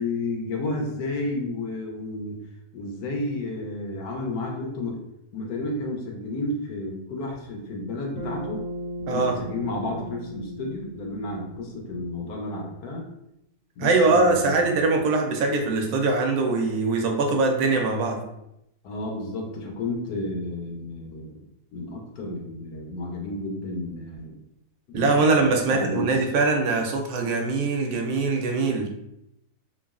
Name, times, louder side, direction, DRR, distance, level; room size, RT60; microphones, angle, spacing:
voice 1, 0.0-2.4 2.7-5.0 5.3-8.6 9.0-13.1 13.8-14.8 18.8-21.4 21.7-24.4 24.9-26.1, left 2 dB, 80° left, 0 dB, 1.1 m, -32 dB
Bass guitar, 8.2-12.6, equal, 55° right, 0.8 m, -37 dB
voice 2, 13.8-18.2 24.9-28.9, right 3 dB, 80° right, 2 dB, 1.1 m, -22 dB
3.0 x 2.3 x 2.3 m, 0.82 s
omnidirectional pair, 1.6 m